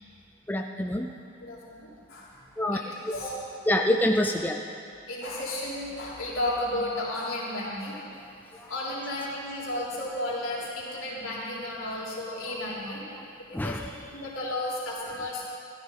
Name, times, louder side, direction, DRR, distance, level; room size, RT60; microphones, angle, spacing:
voice 1, 0.5-1.1 2.6-2.8 3.7-4.6 8.2-8.3 8.5-8.7 13.2-13.3 13.5-13.9, left 1 dB, 10° left, 3 dB, 0.4 m, -26 dB
voice 2, 1.4-2.4 2.7-2.8 3.1-3.3 5.1-8.0 8.5-13.0 13.4-13.8 14.1-15.5, left 1 dB, 80° left, -6 dB, 3.4 m, -33 dB
14.5 x 13.0 x 4.1 m, 2.5 s
head